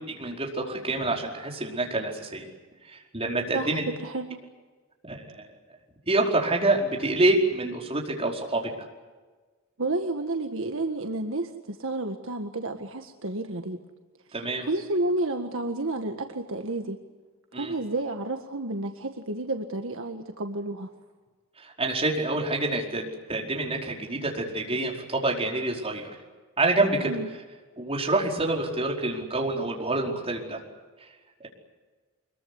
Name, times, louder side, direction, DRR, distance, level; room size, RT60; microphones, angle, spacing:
voice 1, 0.2-2.4 2.8-3.8 5.0-5.4 6.1-8.7 14.3-14.7 17.5-17.7 21.6-26.1 26.6-27.1 27.8-30.6, right 2 dB, 30° right, 0 dB, 4.9 m, -27 dB
voice 2, 3.5-4.4 9.8-13.8 14.6-17.0 17.5-20.9 27.0-27.3, right 2 dB, 65° right, 5 dB, 1.8 m, -31 dB
25.0 x 22.5 x 9.7 m, 1.3 s
head